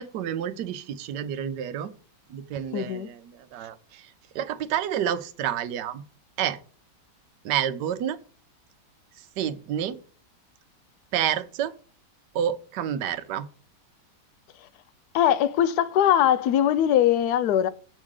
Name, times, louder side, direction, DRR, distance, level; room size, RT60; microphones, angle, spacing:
voice 1, 0.0-1.9 2.3-3.2 3.5-4.0 4.3-6.0 6.4-6.6 7.4-8.2 9.4-10.0 11.1-11.7 12.3-13.5, right 10 dB, 75° right, 1.3 m, -29 dB
voice 2, 2.7-3.1 15.1-17.7, left 10 dB, 70° left, 1.1 m, -21 dB
8.1 x 3.6 x 6.4 m
omnidirectional pair, 1.9 m